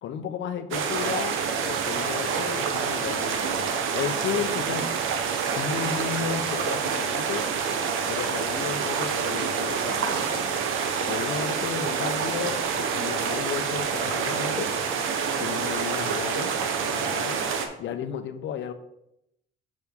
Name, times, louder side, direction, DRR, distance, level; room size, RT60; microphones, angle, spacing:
voice 1, 0.0-5.0 5.5-7.5 8.1-10.4 11.1-14.7 15.4-16.6 16.9-17.4 17.8-18.7, left 8 dB, 70° left, 9 dB, 0.7 m, -33 dB
sound 1, 0.7-17.7, right 6 dB, 85° right, 0.8 m, -27 dB
6.2 x 5.4 x 3.6 m, 0.80 s
cardioid pair, 90°, 20 cm